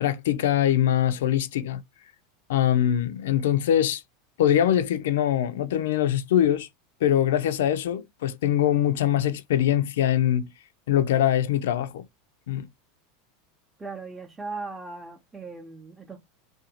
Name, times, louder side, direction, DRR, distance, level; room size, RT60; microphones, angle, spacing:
voice 1, 0.0-1.8 2.5-4.0 4.4-6.7 7.0-10.5 10.9-12.0 12.5-12.7, left 11 dB, 80° left, 0.3 m, -23 dB
voice 2, 13.8-16.2, right 3 dB, 15° right, 0.6 m, -38 dB
2.5 x 2.2 x 2.8 m
hypercardioid pair, 100°, 0 cm